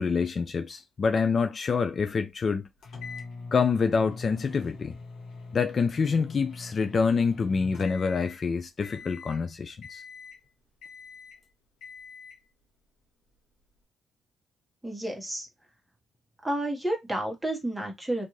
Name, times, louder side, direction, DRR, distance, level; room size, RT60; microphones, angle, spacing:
voice 1, 0.0-2.7 3.5-4.9 5.5-10.0, left 5 dB, 40° left, 0.4 m, -26 dB
sound 1, 2.8-8.5 8.8-9.4 9.8-10.5 10.8-11.4 11.8-12.4, left 4 dB, 65° left, 1.0 m, -43 dB
voice 2, 14.8-15.5 16.4-18.2, right 1 dB, 10° right, 1.2 m, -30 dB
2.5 x 2.5 x 3.1 m
cardioid pair, 90°, 0 cm